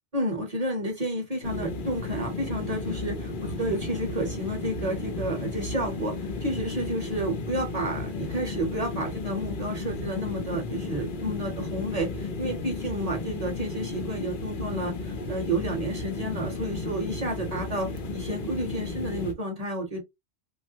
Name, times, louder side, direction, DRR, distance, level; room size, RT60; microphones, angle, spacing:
voice 1, 0.1-20.0, right 1 dB, 40° right, 0.8 m, -31 dB
sound 1, 1.4-19.3, left 3 dB, 55° left, 0.8 m, -34 dB
3.1 x 2.3 x 2.7 m
omnidirectional pair, 1.2 m